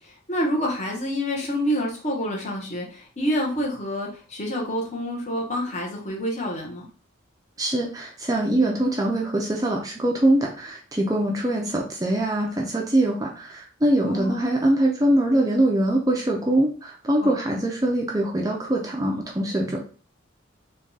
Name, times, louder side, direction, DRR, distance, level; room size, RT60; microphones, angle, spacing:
voice 1, 0.0-6.9 14.0-14.6 17.2-17.3, equal, 35° left, -1 dB, 0.9 m, -28 dB
voice 2, 7.6-19.8, right 1 dB, 15° right, -1 dB, 0.5 m, -23 dB
3.6 x 2.3 x 3.9 m, 0.39 s
head